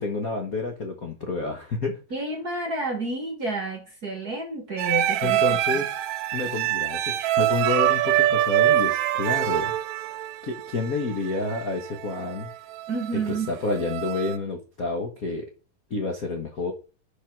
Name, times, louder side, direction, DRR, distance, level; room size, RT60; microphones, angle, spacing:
voice 1, 0.0-2.0 5.2-5.9 6.3-9.7 10.4-12.5 13.3-15.5 15.9-16.7, left 3 dB, 80° left, 3 dB, 0.7 m, -29 dB
voice 2, 2.1-5.4 12.9-13.5, right 3 dB, 45° right, 4 dB, 1.3 m, -30 dB
sound 1, 4.8-14.4, right 13 dB, 75° right, 1.9 m, -25 dB
10.0 x 5.7 x 6.0 m, 0.36 s
omnidirectional pair, 3.7 m